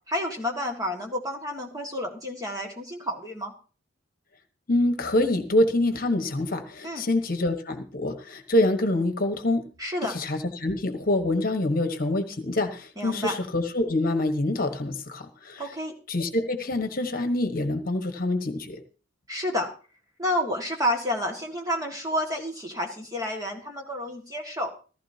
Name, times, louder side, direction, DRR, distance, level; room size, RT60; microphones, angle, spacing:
voice 1, 0.1-3.5 6.8-7.1 9.8-10.2 13.0-13.4 15.6-15.9 19.3-19.7 20.2-24.7, equal, 15° right, 1 dB, 1.9 m, -30 dB
voice 2, 4.7-9.7 10.0-15.7 16.1-18.8, left 1 dB, 45° left, 7 dB, 1.3 m, -26 dB
15.5 x 15.0 x 2.8 m, 0.36 s
head